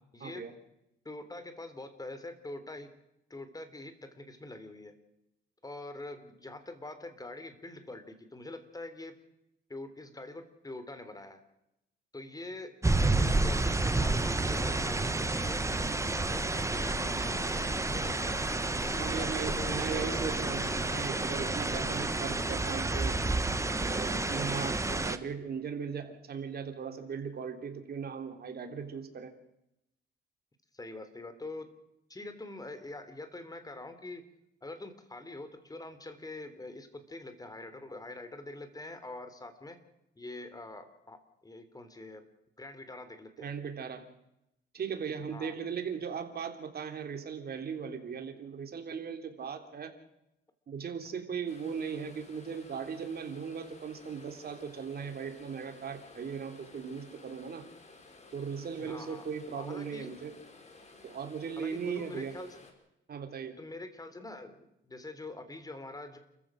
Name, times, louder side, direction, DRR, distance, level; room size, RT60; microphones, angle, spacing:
voice 1, 0.2-0.5 19.0-23.2 23.8-29.3 43.4-44.1 44.7-49.9 50.7-57.7 58.3-60.3 61.0-62.4 63.1-63.6, right 6 dB, 50° right, 6 dB, 3.4 m, -38 dB
voice 2, 1.1-2.9 3.3-4.9 5.6-9.1 9.7-11.4 12.1-18.5 19.0-20.4 24.8-25.1 30.7-31.7 32.1-34.2 34.6-39.8 40.2-41.2 41.4-42.2 42.6-43.5 45.3-45.6 58.7-59.2 59.5-60.1 61.6-62.6 63.6-66.2, left 2 dB, 20° left, 9 dB, 3.5 m, -44 dB
sound 1, 12.8-25.2, right 2 dB, 15° right, 1.4 m, -30 dB
Musical instrument, 16.7-22.6, left 8 dB, 85° left, 2.5 m, -49 dB
sound 2, 51.5-62.7, left 3 dB, 35° left, 4.9 m, -55 dB
29.5 x 15.0 x 6.4 m, 0.84 s
cardioid pair, 90°, 20 cm